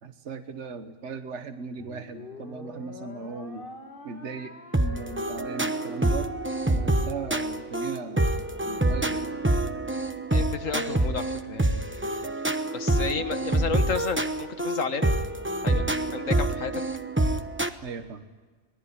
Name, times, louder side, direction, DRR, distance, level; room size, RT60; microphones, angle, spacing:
voice 1, 0.0-3.7 4.0-6.3 6.7-8.2 8.7-9.3 13.2-13.3 17.8-18.2, right 4 dB, 60° right, 7 dB, 1.5 m, -38 dB
sound 1, 1.8-8.3, left 3 dB, 45° left, 2.6 m, -46 dB
sound 2, 4.7-17.7, right 1 dB, 10° right, 0.9 m, -26 dB
voice 2, 10.3-12.4 12.7-15.2 15.6-16.8, left 5 dB, 75° left, 9 dB, 1.8 m, -32 dB
26.0 x 19.5 x 9.9 m, 1.4 s
omnidirectional pair, 1.3 m